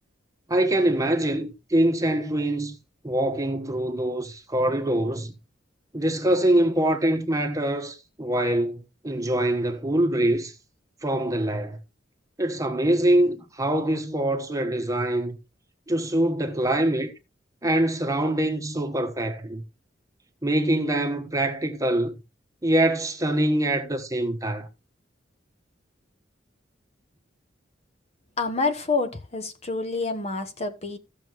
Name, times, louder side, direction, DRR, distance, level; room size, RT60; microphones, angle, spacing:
voice 1, 0.5-2.8 3.0-5.3 5.9-10.5 11.0-11.8 12.4-15.4 15.9-17.1 17.6-19.6 20.4-22.1 22.6-24.7, right 1 dB, 20° right, 1.2 m, -24 dB
voice 2, 28.4-31.0, left 3 dB, 35° left, 1.2 m, -27 dB
16.0 x 6.7 x 3.0 m
head